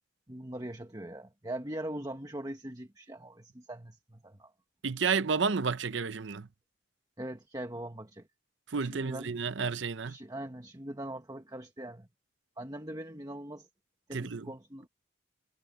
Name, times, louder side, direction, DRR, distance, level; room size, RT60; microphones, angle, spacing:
voice 1, 0.3-4.5 7.2-8.3 8.8-9.3 10.0-12.1 12.6-13.7 14.1-14.9, right 1 dB, 20° right, 1.4 m, -41 dB
voice 2, 4.8-6.5 8.7-10.1 14.1-14.5, right 5 dB, 75° right, 0.8 m, -31 dB
head